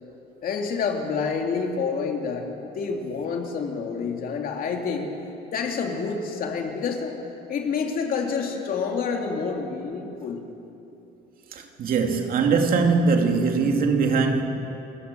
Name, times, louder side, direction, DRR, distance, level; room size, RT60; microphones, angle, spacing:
voice 1, 0.4-5.1 5.5-7.1 7.5-10.4, left 5 dB, 60° left, 2.8 m, -28 dB
voice 2, 11.5-14.4, right 4 dB, 60° right, 2.6 m, -21 dB
28.0 x 18.0 x 7.0 m
cardioid pair, 110°, 17 cm